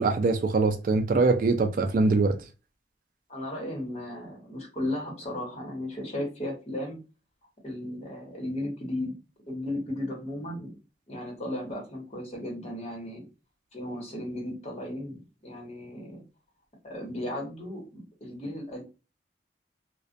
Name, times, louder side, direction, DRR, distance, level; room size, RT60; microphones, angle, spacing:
voice 1, 0.0-2.4, right 3 dB, 50° right, 0.3 m, -23 dB
voice 2, 3.3-7.0 7.6-9.2 9.5-10.8 11.1-13.3 13.7-16.2 16.8-18.8, left 1 dB, 35° left, 1.0 m, -35 dB
2.3 x 2.1 x 2.5 m
head